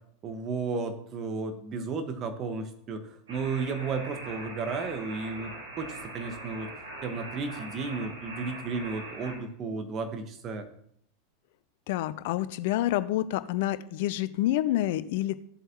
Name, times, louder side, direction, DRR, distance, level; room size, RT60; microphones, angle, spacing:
voice 1, 0.2-6.7 7.0-10.7, right 4 dB, 35° right, 7 dB, 1.5 m, -33 dB
sound 1, 3.3-9.3, right 2 dB, 75° right, 4.9 m, -41 dB
voice 2, 11.9-15.4, left 14 dB, 60° left, 16 dB, 0.6 m, -28 dB
14.0 x 7.8 x 3.0 m, 0.68 s
figure-of-eight pair, 90°, 0 cm